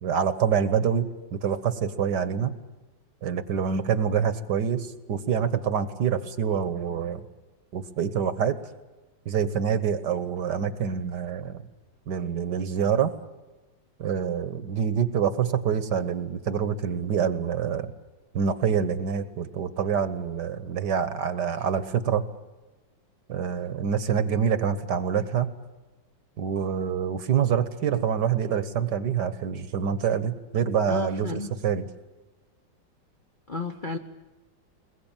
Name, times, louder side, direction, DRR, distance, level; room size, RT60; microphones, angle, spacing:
voice 1, 0.0-2.5 3.2-7.2 7.7-8.6 9.2-11.6 12.1-13.1 14.0-17.9 18.3-22.2 23.3-25.5 26.4-31.9, right 7 dB, 60° right, 12 dB, 1.6 m, -26 dB
voice 2, 30.9-31.5 33.5-34.0, left 3 dB, 40° left, 2 dB, 0.8 m, -32 dB
21.5 x 21.5 x 8.9 m, 1.2 s
omnidirectional pair, 2.1 m